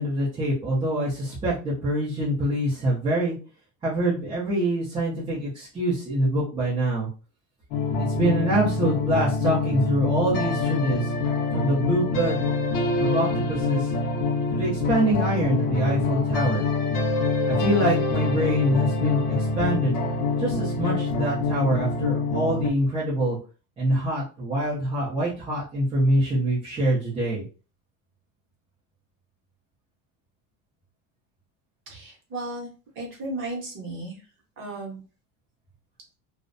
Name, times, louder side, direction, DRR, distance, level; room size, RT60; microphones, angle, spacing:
voice 1, 0.0-3.4 3.8-7.1 7.9-11.1 11.5-12.5 13.0-13.9 14.5-16.6 17.5-20.0 20.4-23.4 23.8-27.4, right 1 dB, 15° right, -9 dB, 0.3 m, -25 dB
sound 1, 7.7-22.7, left 3 dB, 50° left, 0.5 m, -25 dB
voice 2, 31.9-32.7 33.0-34.3 34.6-35.0, right 2 dB, 30° right, -1 dB, 0.7 m, -34 dB
2.4 x 2.1 x 2.4 m, 0.34 s
cardioid pair, 175°, 43 cm